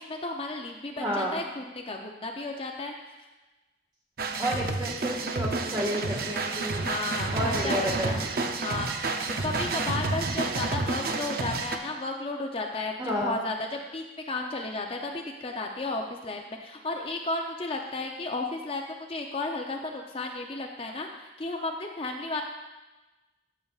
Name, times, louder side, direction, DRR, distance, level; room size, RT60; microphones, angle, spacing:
voice 1, 0.0-2.9 6.8-8.3 8.6-9.1 9.4-22.4, left 2 dB, 30° left, 2 dB, 0.5 m, -33 dB
voice 2, 1.0-1.4 4.4-6.9 7.3-8.2 13.0-13.4, equal, 25° right, -2 dB, 1.6 m, -31 dB
sound 1, 4.2-11.8, right 3 dB, 55° right, 0.6 m, -30 dB
13.5 x 6.9 x 2.4 m, 1.1 s
head